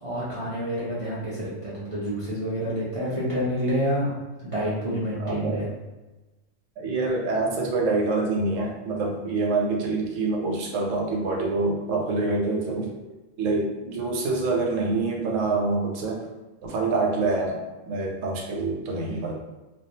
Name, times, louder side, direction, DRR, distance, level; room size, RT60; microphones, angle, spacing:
voice 1, 0.0-4.1 4.4-5.7, equal, 55° right, -9 dB, 0.3 m, -28 dB
voice 2, 5.2-5.6 6.8-16.2 16.6-19.3, right 3 dB, 80° right, 0 dB, 0.9 m, -26 dB
2.3 x 2.2 x 2.6 m, 1.1 s
omnidirectional pair, 1.3 m